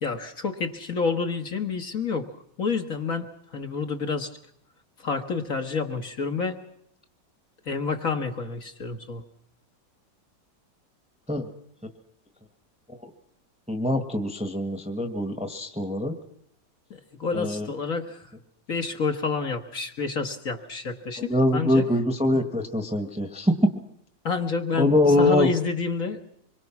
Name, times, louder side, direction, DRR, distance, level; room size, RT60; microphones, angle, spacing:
voice 1, 0.0-2.3 2.6-4.3 5.0-6.6 7.6-9.2 16.9-18.2 18.7-21.9 24.2-26.2, left 4 dB, 50° left, 5 dB, 1.7 m, -29 dB
voice 2, 13.7-16.1 17.3-17.7 21.2-23.7 24.8-25.5, left 1 dB, 5° right, 7 dB, 1.3 m, -23 dB
25.5 x 22.5 x 5.9 m, 0.70 s
omnidirectional pair, 2.0 m